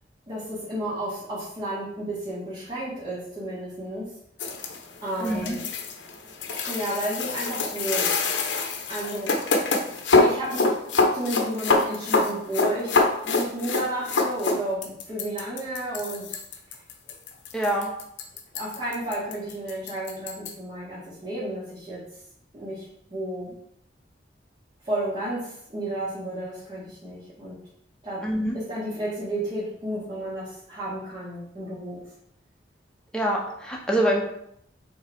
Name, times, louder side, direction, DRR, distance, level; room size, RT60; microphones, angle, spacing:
voice 1, 0.3-4.1 5.0-5.6 6.7-8.2 8.9-9.4 10.2-16.4 18.5-22.1 22.5-23.5 24.8-27.6 28.0-28.3 28.5-32.0, right 1 dB, 30° right, -11 dB, 2.3 m, -32 dB
sound 1, 4.4-20.5, left 3 dB, 85° left, 0.9 m, -25 dB
voice 2, 5.2-5.6 17.5-17.9 28.2-28.6 33.1-34.2, right 1 dB, 5° left, -2 dB, 1.1 m, -25 dB
5.5 x 4.0 x 4.7 m, 0.72 s
head